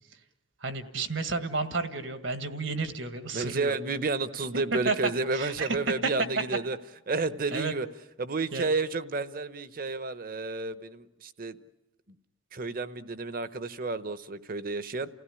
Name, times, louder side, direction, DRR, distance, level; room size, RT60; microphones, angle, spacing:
voice 1, 0.6-4.0 4.9-5.0 5.3-5.7 7.5-7.7 8.5-8.7, right 3 dB, 75° right, 1.8 m, -32 dB
voice 2, 3.3-6.8 7.1-7.9 8.2-11.6 12.5-15.1, right 3 dB, 45° right, 0.9 m, -31 dB
29.5 x 16.0 x 10.0 m
head